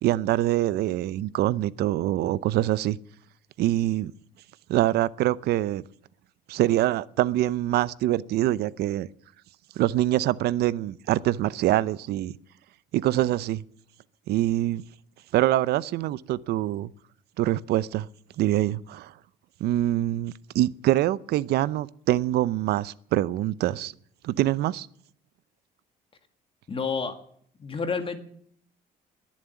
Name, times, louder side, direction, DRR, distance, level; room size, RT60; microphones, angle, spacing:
voice 1, 0.0-3.0 3.6-4.1 4.7-5.8 6.5-9.1 9.8-12.3 12.9-13.6 14.3-14.8 15.3-16.9 17.4-18.1 18.4-19.1 19.6-23.9 24.2-24.9, right 14 dB, 75° right, 0.6 m, -24 dB
voice 2, 26.7-27.2 27.6-28.2, left 5 dB, 30° left, 1.9 m, -29 dB
21.0 x 7.5 x 9.3 m
cardioid pair, 110°, 17 cm